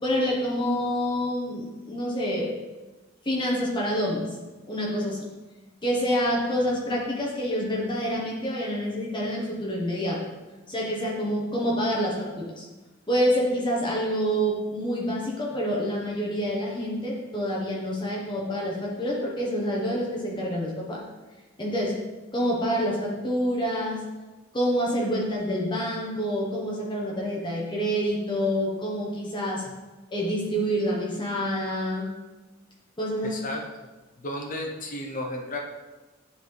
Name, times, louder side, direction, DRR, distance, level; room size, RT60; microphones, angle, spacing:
voice 1, 0.0-2.5 3.2-4.4 4.7-5.3 5.8-10.2 10.7-12.6 13.1-21.0 21.6-22.0 22.3-24.0 24.5-29.7 30.1-32.1 33.0-33.4, equal, 25° left, -4 dB, 1.1 m, -27 dB
voice 2, 33.2-33.6 34.2-35.6, left 1 dB, 40° left, 1 dB, 0.7 m, -33 dB
9.7 x 4.0 x 3.3 m, 1.2 s
head